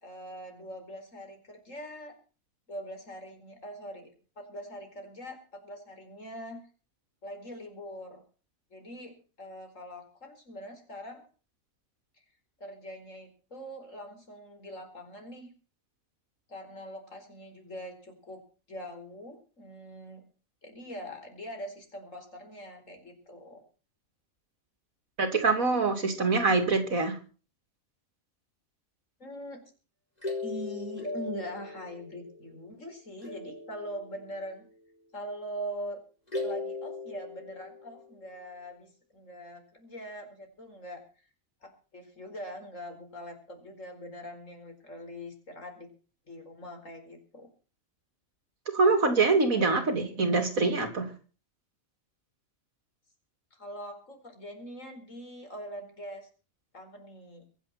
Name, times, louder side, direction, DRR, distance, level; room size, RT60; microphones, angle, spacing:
voice 1, 0.0-2.1 2.7-4.1 4.4-6.6 7.2-8.2 8.7-11.3 12.6-15.5 16.5-18.4 18.7-20.2 20.6-23.6 29.2-29.7 30.4-34.6 35.1-36.0 36.4-41.0 41.6-45.9 46.3-47.5 53.5-56.3 56.7-57.4, equal, 65° left, 5 dB, 5.0 m, -42 dB
voice 2, 25.2-27.2 48.7-51.1, right 3 dB, 80° right, 6 dB, 3.2 m, -24 dB
sound 1, 30.2-32.8 33.2-34.7 36.3-38.2, left 2 dB, 30° left, 4.6 m, -38 dB
24.0 x 8.1 x 5.9 m, 0.38 s
omnidirectional pair, 1.4 m